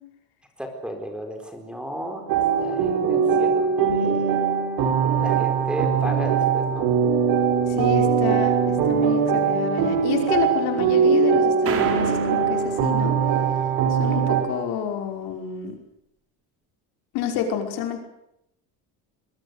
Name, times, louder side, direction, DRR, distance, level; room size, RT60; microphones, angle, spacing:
voice 1, 0.6-4.4 5.2-6.9, equal, ahead, 5 dB, 4.5 m, -34 dB
sound 1, 2.3-14.4, right 6 dB, 65° right, 7.4 m, -21 dB
voice 2, 7.7-13.2 13.9-15.8 17.1-18.0, left 8 dB, 70° left, 4 dB, 5.5 m, -29 dB
sound 2, 11.7-13.6, right 6 dB, 35° right, 4.3 m, -31 dB
24.5 x 22.0 x 8.2 m, 0.80 s
cardioid pair, 165°, 38 cm